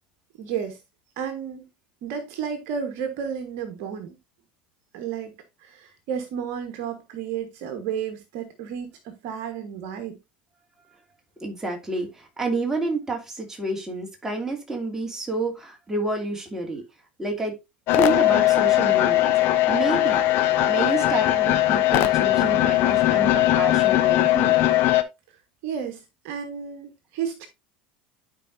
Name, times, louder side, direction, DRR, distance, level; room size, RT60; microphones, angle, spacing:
voice 1, 0.4-0.8 1.2-1.6 2.0-4.2 4.9-5.3 5.6-10.2 25.6-27.5, right 7 dB, 55° right, 1.3 m, -32 dB
voice 2, 11.4-16.8 17.2-17.6 17.9-20.3 20.7-24.6, right 2 dB, 10° right, 2.7 m, -29 dB
sound 1, 17.9-25.0, left 14 dB, 50° left, 0.9 m, -20 dB
12.0 x 4.9 x 2.7 m
figure-of-eight pair, 75°, 5 cm